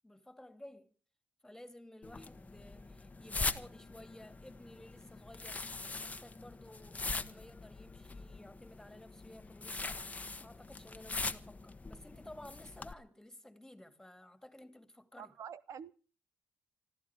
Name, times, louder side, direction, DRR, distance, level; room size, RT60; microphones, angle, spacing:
voice 1, 0.0-0.9 1.4-5.6 6.0-10.1 10.4-15.3, left 1 dB, 10° left, 2.6 m, -54 dB
sound 1, 2.0-12.9, left 3 dB, 25° left, 1.1 m, -42 dB
voice 2, 15.2-15.9, right 7 dB, 65° right, 0.7 m, -46 dB
26.0 x 14.0 x 3.6 m
supercardioid pair, 60°, 6 cm